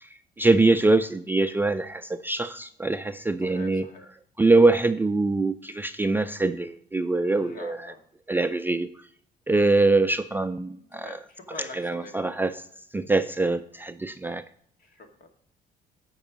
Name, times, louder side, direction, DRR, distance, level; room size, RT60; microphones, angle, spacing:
voice 1, 0.0-3.8 4.4-7.8 8.3-8.9 9.5-11.1 11.7-12.5 12.9-14.4, right 3 dB, 10° right, 9 dB, 0.4 m, -23 dB
voice 2, 3.4-4.2 7.3-8.0 10.9-12.3 14.8-15.3, left 3 dB, 55° left, 4 dB, 2.0 m, -45 dB
10.0 x 5.4 x 5.0 m, 0.66 s
cardioid pair, 110°, 17 cm